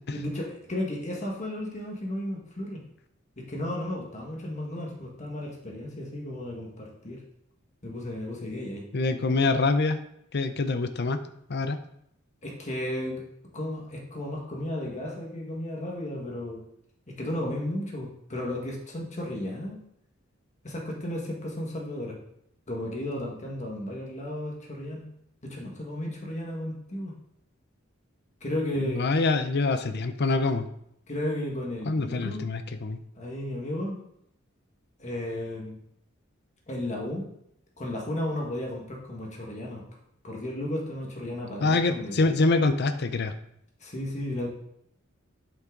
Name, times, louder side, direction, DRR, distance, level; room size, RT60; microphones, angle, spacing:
voice 1, 0.1-2.8 3.4-7.2 7.8-8.8 12.4-13.2 13.5-16.6 17.1-19.8 20.6-22.2 22.7-25.1 25.4-27.1 28.4-29.1 31.1-32.4 33.2-34.0 35.0-35.8 36.7-37.3 37.8-39.8 40.2-42.3 43.8-44.5, left 1 dB, 35° left, -1 dB, 1.7 m, -34 dB
voice 2, 8.9-10.0 10.3-11.2 11.5-11.8 28.9-30.7 31.9-33.0 41.6-43.3, left 3 dB, 55° left, 10 dB, 0.6 m, -25 dB
8.7 x 6.0 x 3.9 m, 0.74 s
head